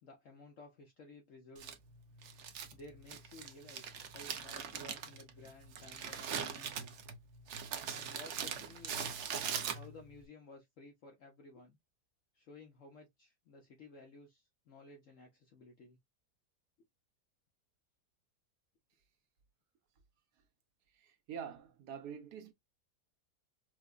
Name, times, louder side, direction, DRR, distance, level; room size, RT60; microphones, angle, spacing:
voice 1, 0.0-1.7 2.7-6.9 7.9-9.2 9.7-11.8 12.3-16.0, left 2 dB, 60° left, 1.0 m, -55 dB
Crumpling crinkling, 1.6-10.2, right 7 dB, 60° right, 0.8 m, -42 dB
voice 2, 20.9-22.5, right 8 dB, 75° right, 1.3 m, -46 dB
4.7 x 2.2 x 2.4 m
omnidirectional pair, 1.7 m